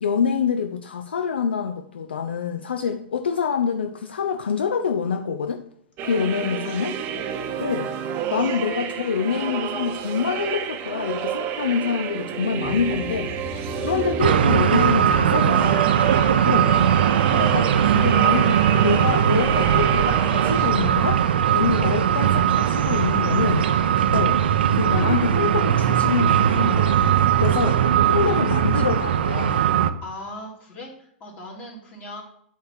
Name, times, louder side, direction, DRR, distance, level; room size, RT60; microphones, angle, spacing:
voice 1, 0.0-5.6 6.0-7.0 7.6-7.9 8.3-13.3 13.8-15.8 16.5-16.7 17.3-21.2 21.5-23.7 24.1-24.4 24.7-27.8 28.1-29.6, left 6 dB, 70° left, 6 dB, 0.6 m, -26 dB
voice 2, 6.0-6.8 7.1-7.6 8.3-8.6 13.5-13.8 16.1-16.4 21.7-21.8 27.9-28.6 30.0-32.2, left 1 dB, 30° left, -1 dB, 2.4 m, -40 dB
sound 1, 6.0-20.7, right 8 dB, 35° right, 0.8 m, -30 dB
sound 2, 12.6-21.2, left 1 dB, 5° right, 1.2 m, -41 dB
sound 3, 14.2-29.9, right 9 dB, 65° right, 0.5 m, -19 dB
8.4 x 3.2 x 5.8 m, 0.67 s
figure-of-eight pair, 105°, 6 cm